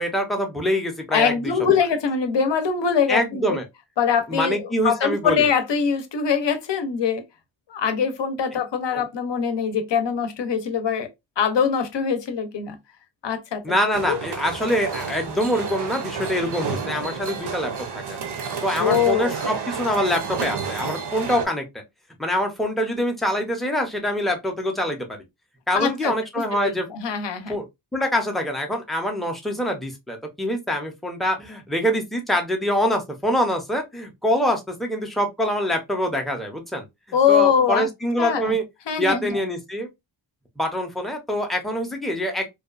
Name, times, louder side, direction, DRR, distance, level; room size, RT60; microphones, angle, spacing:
voice 1, 0.0-1.3 3.1-3.6 4.3-5.5 8.9-9.0 13.6-18.2 18.6-21.6 22.2-25.2 25.7-26.9 27.5-27.6 27.9-36.9 37.3-38.6 39.0-39.9 40.6-42.5, equal, ahead, 0.5 m, -25 dB
voice 2, 1.1-3.6 4.0-7.2 7.7-11.1 11.4-12.8 13.2-13.6 14.0-14.2 18.8-19.3 25.7-27.6 37.1-37.9 38.2-38.6 38.9-39.4, left 7 dB, 60° left, 0.7 m, -23 dB
sound 1, 13.9-21.5, right 5 dB, 55° right, 0.7 m, -31 dB
2.7 x 2.3 x 2.3 m
wide cardioid pair, 110°, 47 cm